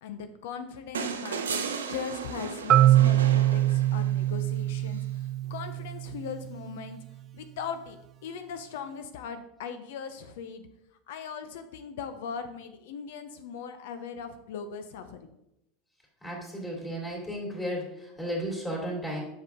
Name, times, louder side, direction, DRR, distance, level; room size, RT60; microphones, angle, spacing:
voice 1, 0.0-7.0 7.3-10.7 11.1-15.2, left 6 dB, 70° left, 9 dB, 0.6 m, -39 dB
sound 1, 0.9-4.3 5.8-5.9, right 6 dB, 90° right, 0.6 m, -35 dB
Marimba xylophone, 2.7-6.6, right 14 dB, 40° right, 0.3 m, -23 dB
voice 2, 16.2-19.2, equal, 20° left, -2 dB, 2.7 m, -34 dB
7.2 x 5.5 x 3.7 m, 0.85 s
hypercardioid pair, 90°, 0 cm